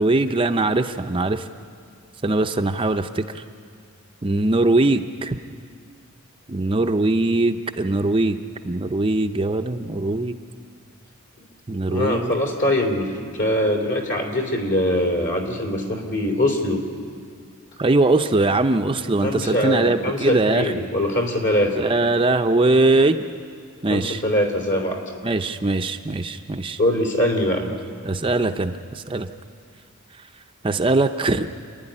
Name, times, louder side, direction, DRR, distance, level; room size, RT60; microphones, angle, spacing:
voice 1, 0.0-1.4 2.2-3.2 4.2-5.4 6.5-8.4 8.6-10.3 11.7-12.4 17.8-20.7 21.7-23.3 23.8-24.2 25.2-26.8 28.0-29.3 30.6-31.5, right 2 dB, 25° right, 6 dB, 0.6 m, -21 dB
voice 2, 11.9-16.8 19.2-21.9 23.9-25.0 26.8-27.7, left 1 dB, 55° left, 2 dB, 3.2 m, -22 dB
28.0 x 12.0 x 10.0 m, 2.1 s
head